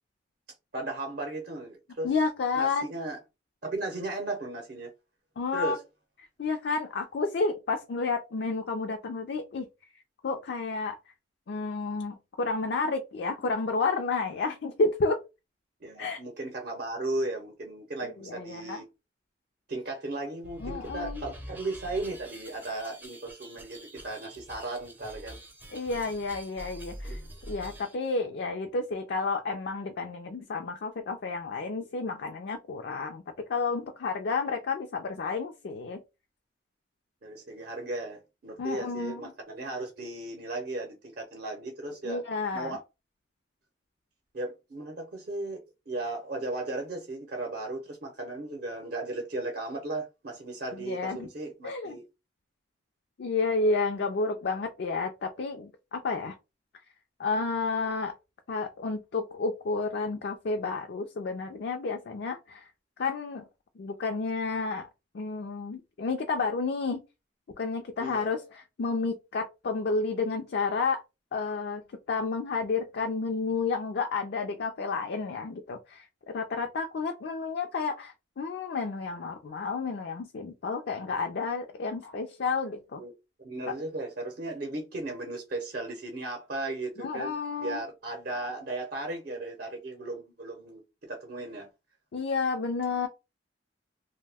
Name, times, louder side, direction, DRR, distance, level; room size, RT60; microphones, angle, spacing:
voice 1, 0.7-2.1 2.6-3.2 3.6-4.9 5.5-5.8 15.8-18.9 19.7-25.4 27.0-27.2 37.2-42.2 42.5-42.8 44.3-52.0 68.0-68.3 83.0-83.1 83.4-90.8 91.1-91.7, right 2 dB, 50° right, 0.6 m, -36 dB
voice 2, 2.0-2.9 5.4-5.8 6.4-9.7 10.2-11.0 11.5-15.2 16.0-16.2 18.3-18.8 20.6-21.2 25.7-27.2 27.5-36.0 38.6-39.2 42.0-42.8 50.8-51.3 51.6-52.0 53.2-56.3 57.2-58.2 58.5-62.6 63.0-63.4 63.8-64.9 65.1-67.0 67.6-71.0 71.3-71.8 72.1-83.0 83.7-83.8 87.0-87.8 92.1-93.1, left 4 dB, 60° left, 0.4 m, -31 dB
sound 1, 20.4-28.0, equal, 10° right, 0.5 m, -45 dB
2.6 x 2.1 x 3.4 m
head